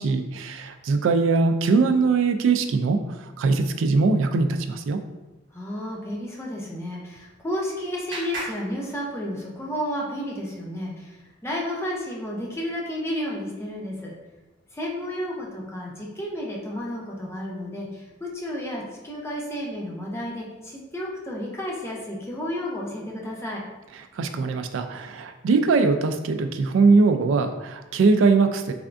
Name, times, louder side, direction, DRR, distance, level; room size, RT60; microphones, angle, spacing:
voice 1, 0.0-3.0 3.4-5.0 24.2-28.7, right 4 dB, 75° right, 8 dB, 0.3 m, -21 dB
voice 2, 5.5-14.1 14.7-23.6, equal, 15° left, -3 dB, 0.6 m, -32 dB
Clapping, 7.0-9.6, right 2 dB, 50° right, 1.5 m, -39 dB
3.5 x 3.3 x 2.5 m, 1.1 s
head